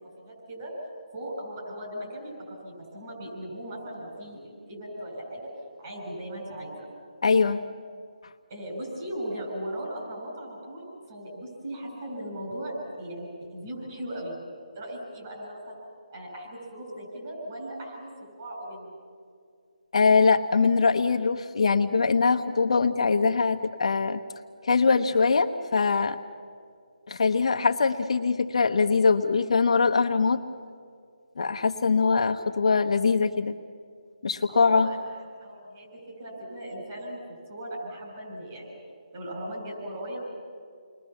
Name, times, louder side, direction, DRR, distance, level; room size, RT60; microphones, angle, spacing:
voice 1, 0.2-0.7 1.1-5.5 5.8-6.9 8.5-14.4 14.7-15.8 16.1-18.1 18.4-18.9 34.5-35.1 35.4-37.2 37.5-38.8 39.1-40.2, right 1 dB, 25° right, -1 dB, 7.1 m, -38 dB
voice 2, 7.2-7.6 19.9-24.2 24.6-26.2 27.1-30.4 31.4-33.5 34.2-34.9, left 4 dB, 50° left, 5 dB, 1.0 m, -22 dB
29.5 x 21.0 x 7.2 m, 2.2 s
hypercardioid pair, 170°, 4 cm